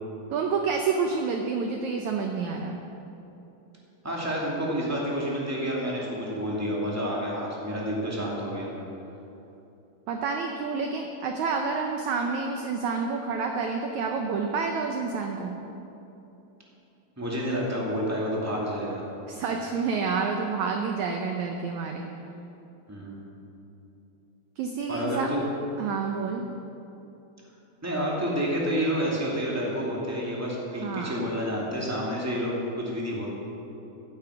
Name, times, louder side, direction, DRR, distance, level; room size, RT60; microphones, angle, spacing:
voice 1, 0.3-2.8 10.1-15.6 19.3-22.1 24.6-25.3 25.8-26.5 30.8-31.2, right 5 dB, 80° right, 3 dB, 1.6 m, -29 dB
voice 2, 4.0-8.7 17.2-19.0 22.9-23.4 24.9-25.4 27.8-33.3, equal, 5° right, -4 dB, 1.6 m, -29 dB
15.0 x 10.0 x 5.8 m, 2.9 s
omnidirectional pair, 4.4 m